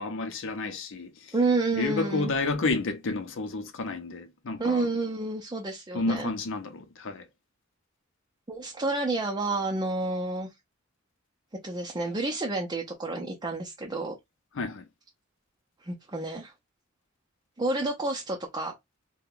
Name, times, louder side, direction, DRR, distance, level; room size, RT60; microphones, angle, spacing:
voice 1, 0.0-1.3 1.7-4.8 5.9-7.2 14.5-14.9, left 3 dB, 65° left, 0.6 m, -30 dB
voice 2, 1.3-2.3 4.6-6.3 8.5-10.5 11.6-14.1 15.8-16.5 17.6-18.7, right 2 dB, 20° right, 0.6 m, -29 dB
2.8 x 2.2 x 3.7 m
head